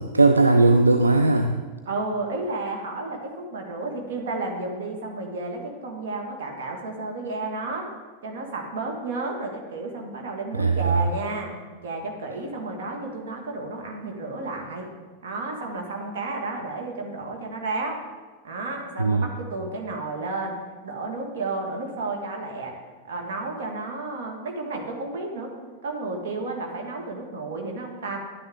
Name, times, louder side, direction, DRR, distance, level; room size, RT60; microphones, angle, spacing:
voice 1, 0.0-1.6 10.5-11.0 19.0-19.3, right 3 dB, 80° right, 5 dB, 0.5 m, -19 dB
voice 2, 1.9-7.9 8.2-11.5 11.8-14.9 15.2-18.0 18.4-22.7 23.0-25.5 25.8-28.2, right 3 dB, 60° right, 1 dB, 1.9 m, -32 dB
11.0 x 9.3 x 3.7 m, 1.4 s
figure-of-eight pair, 90°, 0 cm